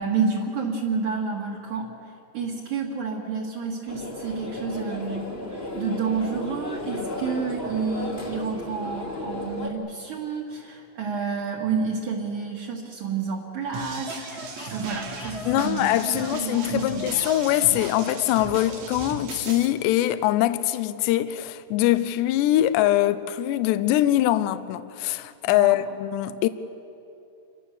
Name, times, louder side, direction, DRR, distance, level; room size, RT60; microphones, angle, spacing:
voice 1, 0.0-1.9 2.3-5.3 5.8-14.1 14.4-17.1 25.6-25.8, right 5 dB, 50° right, 3.1 m, -29 dB
sound 1, 3.9-9.7, left 2 dB, 25° left, 1.5 m, -34 dB
sound 2, 13.7-19.7, right 4 dB, 80° right, 4.4 m, -37 dB
sound 3, 14.1-18.8, left 3 dB, 60° left, 1.0 m, -38 dB
voice 2, 15.5-26.5, left 14 dB, 80° left, 2.8 m, -23 dB
29.0 x 23.5 x 7.0 m
omnidirectional pair, 5.2 m